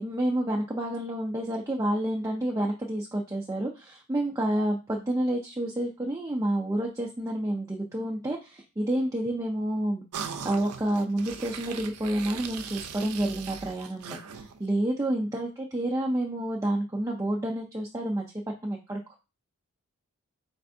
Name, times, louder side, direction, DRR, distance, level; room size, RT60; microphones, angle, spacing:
voice 1, 0.0-10.0 10.4-18.2 18.6-19.2, right 1 dB, 15° right, -1 dB, 0.4 m, -29 dB
sound 1, 10.1-14.7, right 6 dB, 80° right, 0.5 m, -39 dB
4.5 x 3.3 x 2.6 m, 0.28 s
head